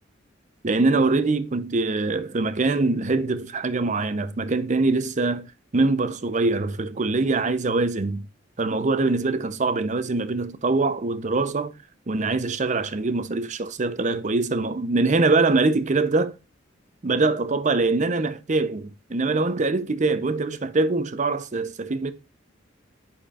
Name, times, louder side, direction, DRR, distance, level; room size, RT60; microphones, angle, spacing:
voice 1, 0.6-5.5 5.7-8.2 8.6-11.7 12.1-16.3 17.0-22.1, right 3 dB, 40° right, 0.6 m, -23 dB
9.9 x 4.4 x 2.4 m
head